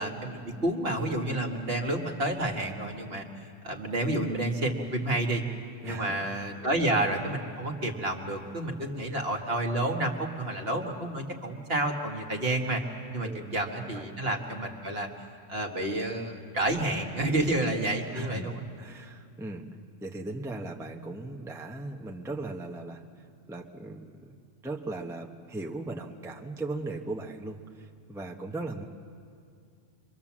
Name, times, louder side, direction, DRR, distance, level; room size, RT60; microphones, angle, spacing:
voice 1, 0.0-3.3 3.6-5.4 5.8-12.8 13.1-15.1 15.5-18.6, right 1 dB, 50° right, 2 dB, 1.9 m, -30 dB
voice 2, 5.8-6.1 6.6-6.7 13.2-13.6 13.9-14.0 18.1-18.5 18.8-19.7 20.0-24.4 24.6-28.8, right 2 dB, ahead, 1 dB, 1.1 m, -38 dB
24.5 x 24.5 x 7.4 m, 2.3 s
omnidirectional pair, 1.4 m